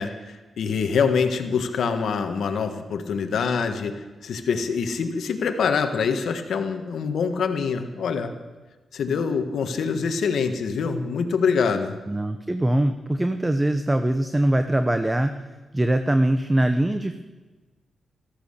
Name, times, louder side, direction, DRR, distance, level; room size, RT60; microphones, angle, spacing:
voice 1, 0.0-8.3 8.9-12.0, left 5 dB, 80° left, 7 dB, 1.5 m, -25 dB
voice 2, 12.1-15.3 15.7-17.2, right 1 dB, 15° right, 8 dB, 0.8 m, -22 dB
14.0 x 13.5 x 6.6 m, 1.2 s
cardioid pair, 85°, 0 cm